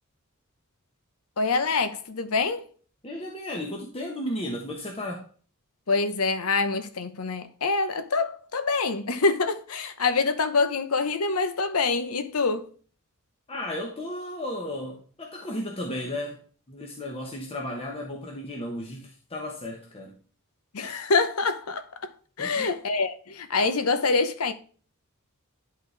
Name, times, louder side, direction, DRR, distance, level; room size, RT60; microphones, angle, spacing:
voice 1, 1.4-2.7 5.9-12.7 20.7-21.9 22.4-24.5, left 4 dB, 75° left, 0.9 m, -25 dB
voice 2, 3.0-5.2 13.5-16.4 16.7-20.1 22.4-22.7, left 1 dB, 25° left, 1.1 m, -34 dB
11.0 x 4.0 x 3.2 m
head